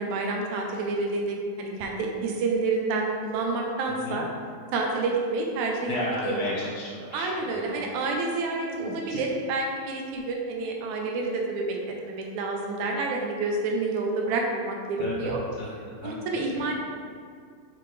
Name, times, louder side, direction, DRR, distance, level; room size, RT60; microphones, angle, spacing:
voice 1, 0.0-4.3 4.7-6.0 6.2-6.5 7.1-15.4 16.0-16.8, right 3 dB, 85° right, 1 dB, 1.6 m, -29 dB
voice 2, 5.8-7.8 8.6-9.2 15.0-15.3 15.6-16.1, left 2 dB, 70° left, -6 dB, 1.0 m, -34 dB
5.9 x 5.5 x 3.3 m, 2.1 s
omnidirectional pair, 4.2 m